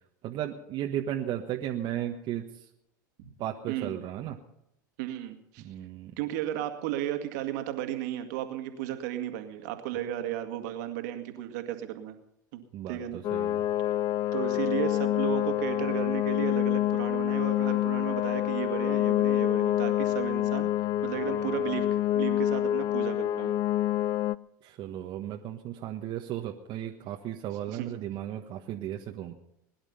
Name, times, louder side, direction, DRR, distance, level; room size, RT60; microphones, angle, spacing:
voice 1, 0.2-2.5 3.4-4.4 5.6-6.1 12.7-13.0 13.3-13.6 24.6-29.3, right 11 dB, 45° right, 2 dB, 1.4 m, -35 dB
voice 2, 3.7-4.0 5.0-5.7 6.2-12.1 12.5-13.2 14.3-21.9 22.1-23.5 27.7-27.9, right 12 dB, 65° right, 6 dB, 2.1 m, -34 dB
sound 1, 13.2-24.4, left 13 dB, 40° left, 0.5 m, -27 dB
21.5 x 11.0 x 5.6 m, 0.79 s
hypercardioid pair, 85°, 10 cm